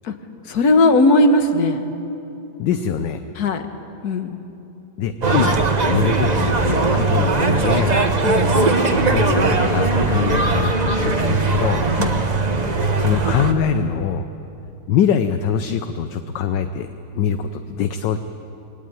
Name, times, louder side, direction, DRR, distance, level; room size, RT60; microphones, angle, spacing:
voice 1, 0.5-1.9 3.4-3.6 4.0-4.4 8.2-8.8 12.0-12.1, left 2 dB, 55° left, 7 dB, 1.7 m, -18 dB
voice 2, 2.6-3.2 5.0-5.6 5.9-7.9 8.9-11.8 13.0-14.3 14.9-16.9 17.1-18.2, left 8 dB, 70° left, 9 dB, 1.4 m, -23 dB
sound 1, 5.2-13.5, right 3 dB, 25° right, 1.1 m, -19 dB
22.0 x 18.0 x 9.4 m, 2.9 s
omnidirectional pair, 2.1 m